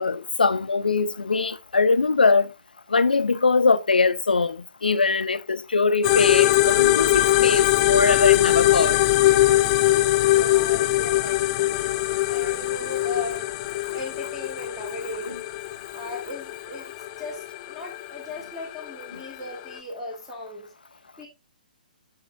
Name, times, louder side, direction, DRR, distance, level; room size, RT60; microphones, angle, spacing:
voice 1, 0.0-2.5 2.9-9.0, left 4 dB, 75° left, 0.6 m, -22 dB
sound 1, 6.0-19.8, left 16 dB, 30° left, 0.4 m, -22 dB
voice 2, 10.2-11.8 12.3-13.5 13.9-15.4 15.9-20.7 21.2-21.3, left 2 dB, 5° right, 1.6 m, -37 dB
7.8 x 5.5 x 2.5 m
figure-of-eight pair, 125°, 5 cm